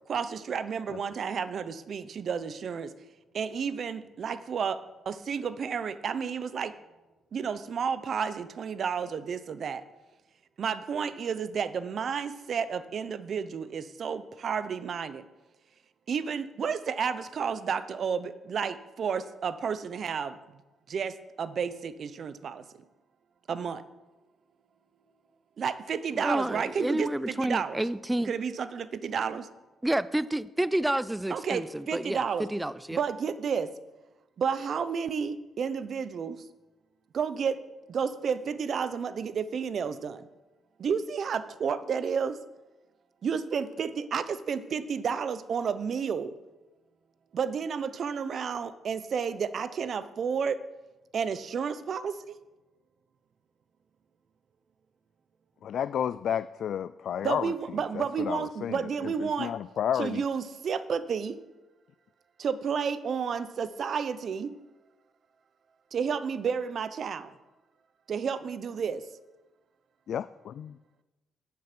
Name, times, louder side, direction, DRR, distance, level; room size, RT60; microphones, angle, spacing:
voice 1, 0.1-2.9 3.3-4.8 5.1-6.7 7.3-9.8 10.6-15.2 16.1-20.4 20.9-22.6 23.5-23.8 25.6-27.8 28.3-29.5 31.3-32.5 32.9-33.7 34.4-36.4 37.1-37.6 37.9-40.3 40.8-42.4 43.2-46.3 47.3-50.6 51.1-52.4 57.2-59.5 60.0-61.4 62.4-64.6 65.9-67.3 68.1-69.0, right 6 dB, 55° right, 14 dB, 0.8 m, -31 dB
voice 2, 26.2-28.3 29.8-33.0, right 1 dB, 10° right, 17 dB, 0.4 m, -29 dB
voice 3, 55.6-57.5 57.9-60.2 70.1-70.8, left 9 dB, 65° left, 15 dB, 0.3 m, -32 dB
10.5 x 8.5 x 6.1 m, 1.1 s
cardioid pair, 90°, 0 cm